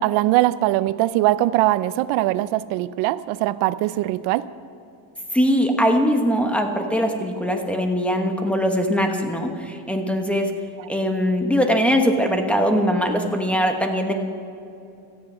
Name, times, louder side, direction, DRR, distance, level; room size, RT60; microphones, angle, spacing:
voice 1, 0.0-4.5 10.8-10.9, right 16 dB, 85° right, 16 dB, 0.7 m, -21 dB
voice 2, 5.3-10.5 10.9-14.1, equal, 5° left, 4 dB, 1.1 m, -21 dB
17.5 x 13.5 x 5.5 m, 2.6 s
cardioid pair, 160°, 44 cm